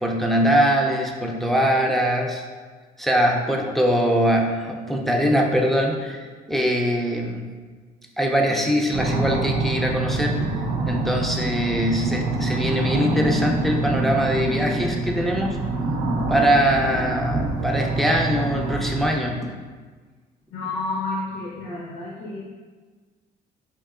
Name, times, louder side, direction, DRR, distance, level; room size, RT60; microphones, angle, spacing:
voice 1, 0.0-2.4 3.0-7.5 8.2-10.5 10.9-15.6 16.3-19.5, equal, ahead, 0 dB, 0.4 m, -22 dB
sound 1, 8.9-19.1, right 2 dB, 90° right, 0.6 m, -25 dB
voice 2, 20.5-22.4, left 2 dB, 70° left, -6 dB, 0.7 m, -30 dB
4.4 x 2.9 x 2.4 m, 1.5 s
cardioid pair, 110°, 17 cm